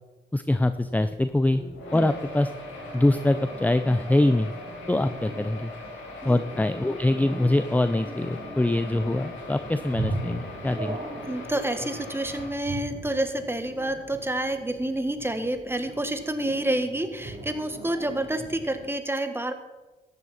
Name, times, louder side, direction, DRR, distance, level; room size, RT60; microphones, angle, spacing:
voice 1, 0.3-1.6 1.9-2.5 2.9-4.5 4.9-5.7 6.2-11.0, left 1 dB, 10° left, 11 dB, 0.6 m, -24 dB
sound 1, 0.6-18.9, right 2 dB, 30° right, 3.7 m, -39 dB
sound 2, 1.7-12.5, left 2 dB, 75° left, 5.0 m, -41 dB
voice 2, 11.3-19.5, right 1 dB, 10° right, 7 dB, 1.8 m, -29 dB
14.0 x 10.5 x 4.4 m, 1.1 s
supercardioid pair, 50°, 20 cm